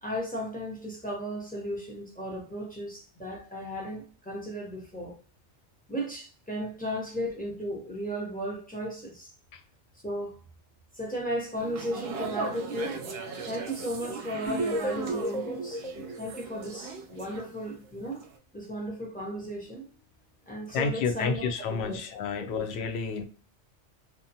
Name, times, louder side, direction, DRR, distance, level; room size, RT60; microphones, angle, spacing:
voice 1, 0.0-5.2 5.9-9.3 10.0-10.3 10.9-13.2 13.5-15.8 16.2-18.2 18.5-19.8 20.5-22.0 22.4-22.5, equal, 10° left, 0.5 m, -35 dB
sound 1, 11.6-17.8 18.1-18.4, right 4 dB, 65° right, 0.7 m, -39 dB
sound 2, 14.5-17.4, right 2 dB, 30° right, 0.7 m, -33 dB
voice 2, 20.7-23.2, left 5 dB, 70° left, 0.8 m, -30 dB
2.6 x 2.1 x 2.7 m
omnidirectional pair, 1.2 m